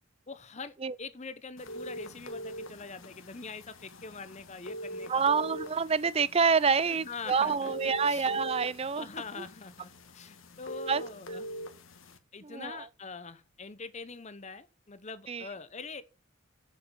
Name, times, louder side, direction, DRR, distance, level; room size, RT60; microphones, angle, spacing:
voice 1, 0.3-5.2 6.9-8.4 8.9-11.5 12.3-16.0, left 4 dB, 35° left, 0.9 m, -44 dB
sound 1, 1.6-12.2, equal, 70° left, 1.5 m, -43 dB
voice 2, 5.1-9.1 10.9-11.0 12.4-12.9 15.3-15.5, right 5 dB, 30° right, 0.4 m, -27 dB
7.7 x 7.1 x 7.1 m
head